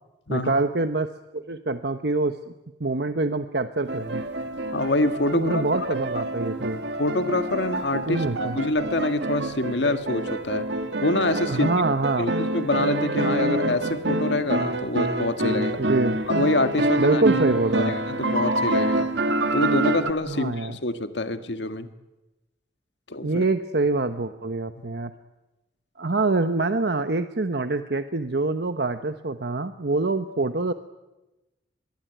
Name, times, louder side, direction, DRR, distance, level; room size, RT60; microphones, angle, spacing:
voice 1, 0.3-2.5 2.8-4.2 5.3-6.8 8.1-8.6 11.5-12.3 15.8-16.2 17.0-17.9 20.3-20.8 23.2-25.1 26.0-30.7, right 3 dB, 65° right, 9 dB, 1.1 m, -25 dB
sound 1, 3.9-20.1, right 1 dB, 80° right, 2.1 m, -27 dB
voice 2, 4.7-5.6 7.0-10.7 11.0-11.7 12.2-15.7 16.3-17.2 17.7-19.1 19.5-21.9 23.1-23.4, left 2 dB, 80° left, 9 dB, 1.7 m, -26 dB
25.0 x 22.5 x 9.3 m, 1.0 s
head